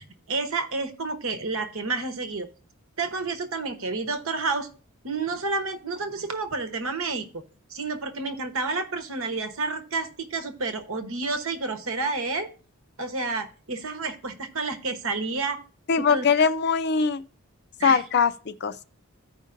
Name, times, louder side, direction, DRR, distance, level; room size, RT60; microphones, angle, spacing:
voice 1, 0.0-2.5 3.0-4.7 5.0-7.4 7.7-12.5 13.0-15.6 16.0-16.2 17.8-18.0, right 3 dB, 70° right, 1.0 m, -30 dB
voice 2, 15.9-17.2 17.8-18.8, left 5 dB, 50° left, 0.4 m, -22 dB
14.5 x 5.1 x 2.6 m
head